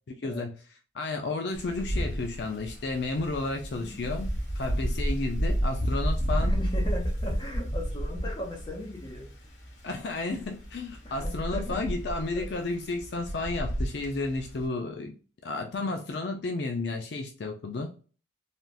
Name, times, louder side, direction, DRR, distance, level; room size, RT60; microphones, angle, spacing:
voice 1, 0.2-0.5 0.9-4.3 4.6-6.5 9.8-15.2 15.4-17.9, left 3 dB, 60° left, 3 dB, 0.4 m, -32 dB
Wind, 1.5-14.7, equal, 80° left, 1.0 m, -31 dB
voice 2, 6.4-9.3 11.0-12.5, left 1 dB, 25° left, 0 dB, 0.8 m, -38 dB
3.4 x 2.3 x 2.5 m, 0.37 s
head